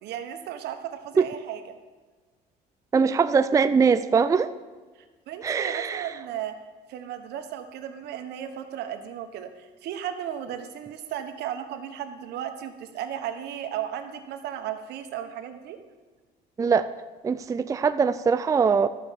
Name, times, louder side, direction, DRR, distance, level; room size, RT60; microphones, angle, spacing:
voice 1, 0.0-1.8 5.3-6.5 6.9-15.8, right 10 dB, 80° right, 7 dB, 1.2 m, -35 dB
voice 2, 2.9-4.5 5.4-6.2 16.6-16.9 17.2-18.9, right 5 dB, 20° right, 11 dB, 0.4 m, -22 dB
12.5 x 6.8 x 7.4 m, 1.4 s
cardioid pair, 110°, 17 cm